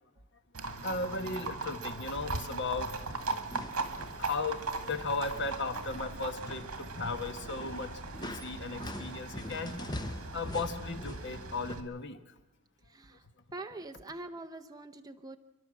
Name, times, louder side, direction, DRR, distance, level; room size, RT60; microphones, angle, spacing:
Livestock farm animals working animals, 0.5-11.8, right 3 dB, 70° right, 2.1 m, -39 dB
voice 1, 0.8-3.2 4.2-4.6 4.9-12.3, left 3 dB, 55° left, 8 dB, 1.3 m, -36 dB
sound 1, 3.0-4.2 4.5-4.9 5.2-11.8, left 1 dB, 20° left, 0.9 m, -44 dB
voice 2, 12.9-13.2 13.5-15.4, right 2 dB, 15° right, 6 dB, 0.7 m, -44 dB
29.5 x 11.5 x 7.6 m, 1.1 s
head